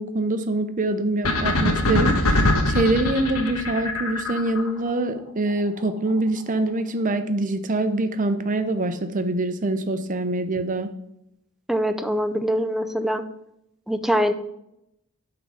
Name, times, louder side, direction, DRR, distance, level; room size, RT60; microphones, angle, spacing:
voice 1, 0.0-10.9, right 2 dB, 35° right, 9 dB, 0.7 m, -24 dB
sound 1, 1.2-4.7, left 1 dB, 80° left, 1.3 m, -22 dB
voice 2, 11.7-13.2 13.9-14.3, equal, ahead, 9 dB, 0.5 m, -23 dB
9.3 x 3.9 x 6.3 m, 0.81 s
head